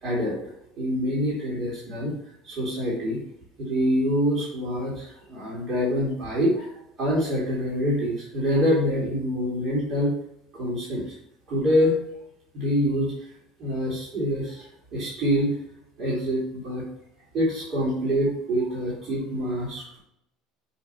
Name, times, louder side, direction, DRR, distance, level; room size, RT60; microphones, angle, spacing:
voice 1, 0.0-2.2 2.4-3.2 3.6-10.1 10.5-11.2 11.5-11.9 12.5-13.3 13.6-15.6 16.0-16.9 17.3-20.0, equal, 45° right, -6 dB, 2.5 m, -26 dB
5.8 x 4.8 x 4.3 m, 0.76 s
cardioid pair, 140°, 0 cm